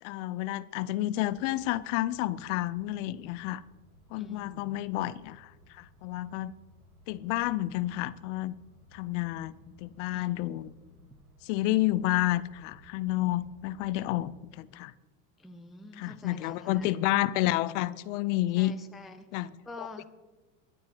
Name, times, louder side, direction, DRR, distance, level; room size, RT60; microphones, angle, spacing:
voice 1, 0.0-3.6 4.1-6.5 7.1-8.6 8.9-10.7 11.4-14.9 16.0-18.7 19.3-19.5 19.8-19.9, left 16 dB, 60° left, 17 dB, 0.6 m, -30 dB
sound 1, 1.1-14.4, equal, 70° right, 4.9 m, -58 dB
voice 2, 4.2-4.8 10.1-10.3 15.4-16.9 18.6-20.1, left 2 dB, ahead, 5 dB, 0.3 m, -47 dB
23.0 x 9.4 x 2.8 m, 1.2 s
supercardioid pair, 135°, 42 cm